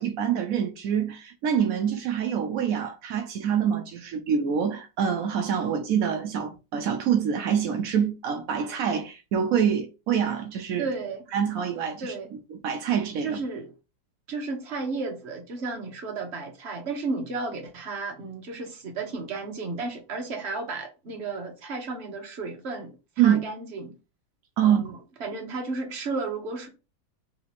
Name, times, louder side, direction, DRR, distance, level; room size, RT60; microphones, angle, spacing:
voice 1, 0.0-10.9 11.3-12.1 12.6-13.4 23.2-23.4 24.6-24.8, right 8 dB, 80° right, 0.7 m, -25 dB
voice 2, 10.8-11.2 12.0-12.3 13.2-13.7 14.3-24.0 24.6-26.7, right 3 dB, 45° right, 1.0 m, -33 dB
3.5 x 2.9 x 4.0 m
omnidirectional pair, 2.1 m